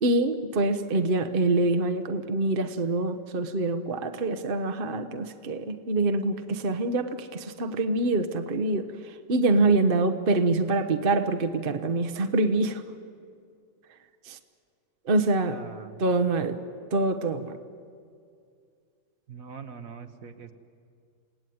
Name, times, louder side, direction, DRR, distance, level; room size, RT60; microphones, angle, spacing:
voice 1, 0.0-12.8 14.3-14.4 15.1-15.6 16.0-16.6 16.9-17.6, right 2 dB, 40° right, 8 dB, 1.0 m, -25 dB
voice 2, 15.5-16.0 19.3-20.5, right 6 dB, 55° right, 8 dB, 1.4 m, -42 dB
28.5 x 17.0 x 9.4 m, 2.3 s
omnidirectional pair, 1.9 m